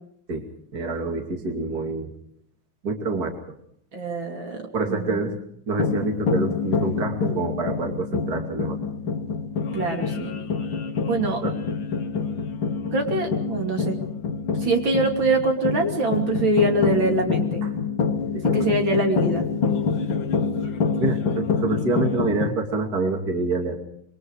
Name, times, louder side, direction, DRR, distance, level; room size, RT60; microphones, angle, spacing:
voice 1, 0.7-2.1 2.8-3.3 4.7-5.4 5.7-8.8 11.4-11.5 18.3-18.8 21.0-23.8, right 3 dB, 45° right, 3 dB, 3.1 m, -27 dB
voice 2, 3.9-4.6 4.9-5.4 9.7-10.4 11.1-11.4 12.9-14.0 14.6-17.6 18.4-19.4, right 2 dB, 65° right, 3 dB, 3.5 m, -24 dB
sound 1, 5.7-22.5, left 5 dB, 65° left, 2.1 m, -26 dB
27.0 x 23.5 x 4.8 m, 0.66 s
omnidirectional pair, 2.3 m